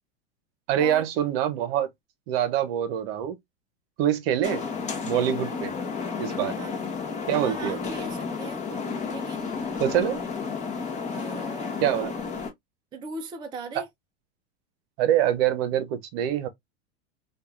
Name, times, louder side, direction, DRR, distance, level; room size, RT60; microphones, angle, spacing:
voice 1, 0.7-1.9 2.3-3.4 4.0-4.6 5.0-5.7 6.2-6.5 7.3-7.8 9.8-10.2 11.8-12.1 13.8-13.9 15.0-16.5, right 10 dB, 60° right, 0.8 m, -25 dB
sound 1, 4.4-12.5, left 5 dB, 20° left, 0.8 m, -32 dB
voice 2, 7.4-8.6 9.1-9.9 11.1-11.9 12.9-13.9, right 3 dB, 15° right, 0.4 m, -39 dB
4.5 x 2.4 x 2.3 m
supercardioid pair, 130°, 34 cm